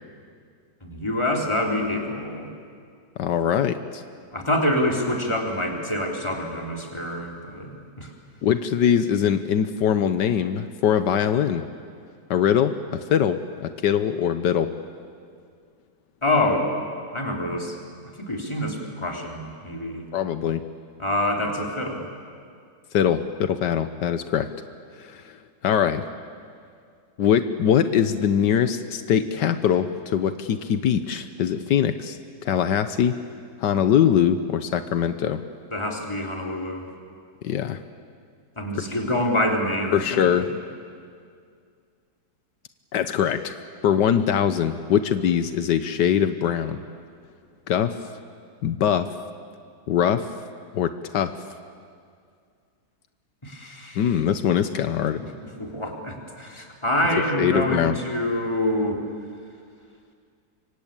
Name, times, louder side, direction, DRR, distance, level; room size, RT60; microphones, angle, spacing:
voice 1, 0.8-2.5 4.3-8.1 16.2-16.7 17.1-17.8 18.2-20.0 21.0-22.0 35.7-36.9 38.6-40.5 53.4-54.0 55.6-59.0, left 1 dB, 15° left, 0 dB, 3.4 m, -26 dB
voice 2, 3.2-4.0 8.4-11.6 12.3-14.7 20.1-20.6 22.9-24.5 25.0-25.4 25.6-26.0 27.2-33.1 33.6-35.4 37.4-37.8 38.9-39.0 39.9-40.5 42.9-43.5 43.8-46.8 47.7-48.0 48.6-49.1 49.9-50.3 50.7-51.3 54.0-55.2 57.4-57.9, left 9 dB, 80° left, 10 dB, 1.5 m, -22 dB
25.5 x 24.0 x 8.9 m, 2.2 s
omnidirectional pair, 1.8 m